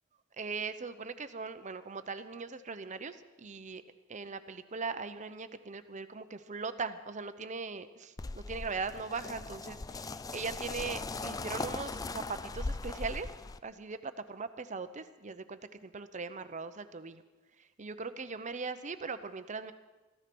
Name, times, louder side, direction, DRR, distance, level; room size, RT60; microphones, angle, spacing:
voice 1, 0.4-3.8 4.1-13.3 13.6-17.2 17.8-19.7, right 4 dB, 35° right, 11 dB, 0.7 m, -40 dB
sound 1, 8.2-13.6, left 3 dB, 20° left, 0.4 m, -39 dB
14.5 x 13.5 x 6.1 m, 1.2 s
head